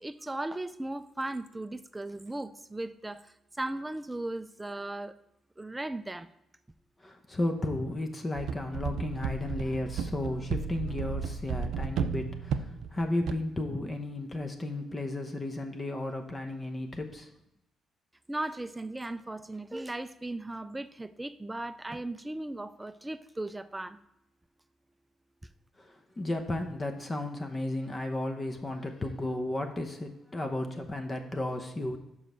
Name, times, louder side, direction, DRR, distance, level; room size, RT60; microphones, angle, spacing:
voice 1, 0.0-5.2 5.6-6.3 18.3-24.0, right 2 dB, 15° right, 13 dB, 0.4 m, -37 dB
voice 2, 7.0-17.3 26.2-32.0, left 1 dB, 25° left, 5 dB, 0.8 m, -34 dB
sound 1, 8.4-13.3, right 6 dB, 80° right, 0.5 m, -33 dB
5.6 x 5.0 x 6.1 m, 0.85 s
cardioid pair, 90°, 0 cm